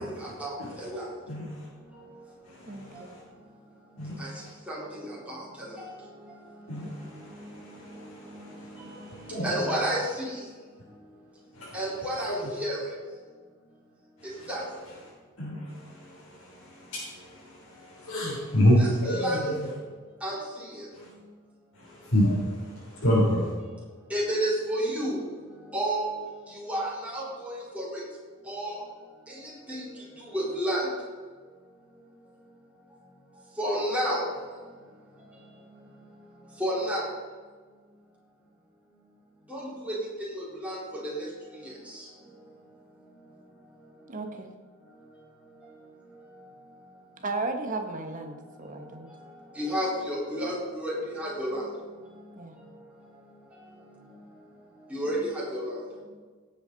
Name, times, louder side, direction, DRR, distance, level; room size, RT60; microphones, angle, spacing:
voice 1, 0.4-1.0 4.2-4.3 4.7-5.4 9.2-10.0 11.7-12.8 14.5-14.6 18.8-19.5 20.2-20.4 24.1-25.2 25.7-26.1 26.7-27.9 28.5-28.8 29.7-29.8 30.3-30.8 33.6-34.2 36.6-37.1 39.5-39.6 39.9-40.0 40.3-40.8 41.1-41.2 49.6-51.6 54.9-55.7, right 1 dB, 5° right, -7 dB, 3.9 m, -30 dB
voice 2, 1.3-1.7 2.4-3.2 4.0-4.5 6.7-9.8 11.5-11.8 12.3-12.4 14.2-14.5 15.4-19.7 20.9-21.1 21.7-23.5, equal, 85° left, -7 dB, 3.5 m, -29 dB
voice 3, 2.7-3.1 44.1-44.5 47.2-49.1 52.4-52.5, right 3 dB, 40° right, 4 dB, 1.3 m, -35 dB
17.5 x 8.0 x 4.1 m, 1.5 s
head